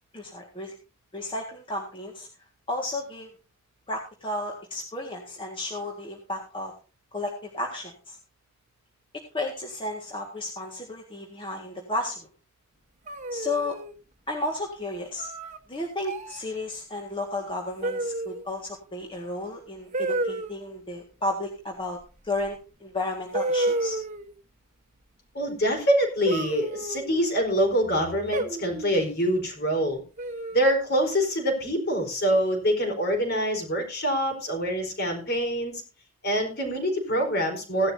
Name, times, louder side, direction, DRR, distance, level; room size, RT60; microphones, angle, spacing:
voice 1, 0.1-0.7 1.1-2.3 2.7-3.3 3.9-6.7 7.1-8.2 9.3-12.2 13.3-13.8 14.3-15.3 15.7-22.0 22.2-24.0, left 2 dB, 25° left, 0 dB, 1.9 m, -33 dB
sound 1, 13.1-13.9 15.2-15.6 16.0-16.4 17.8-18.5 19.9-20.5 22.5-22.6 23.3-24.3 26.3-27.3 28.3-29.0 30.2-30.8, right 2 dB, 35° right, 1.2 m, -30 dB
voice 2, 25.3-30.0 30.5-35.8 36.2-37.9, equal, 50° left, 4 dB, 4.5 m, -25 dB
16.5 x 11.5 x 2.8 m, 0.34 s
head